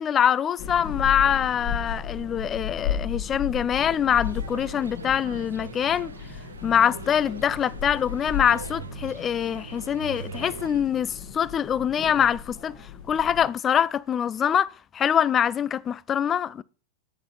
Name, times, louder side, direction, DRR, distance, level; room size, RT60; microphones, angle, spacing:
voice 1, 0.0-6.1 6.6-12.7 13.1-16.6, left 8 dB, 25° left, 0.3 m, -24 dB
sound 1, 0.6-13.5, left 7 dB, 40° left, 1.7 m, -35 dB
sound 2, 4.2-10.8, right 6 dB, 75° right, 0.4 m, -41 dB
8.8 x 7.9 x 3.2 m
figure-of-eight pair, 90°, 0 cm